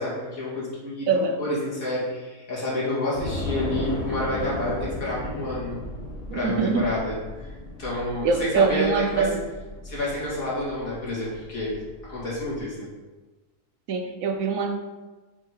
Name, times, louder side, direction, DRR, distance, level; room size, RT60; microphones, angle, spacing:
voice 1, 0.0-1.1 1.4-5.8 6.3-7.5 7.8-9.3 9.8-11.8 12.0-12.9, left 1 dB, 60° left, -7 dB, 3.1 m, -29 dB
voice 2, 1.1-1.4 6.3-7.0 8.2-9.5 13.9-14.7, right 5 dB, 70° right, 4 dB, 0.9 m, -23 dB
Train / Subway metro underground, 3.1-12.6, left 2 dB, 45° left, 2.2 m, -35 dB
7.4 x 6.4 x 3.2 m, 1.2 s
omnidirectional pair, 1.7 m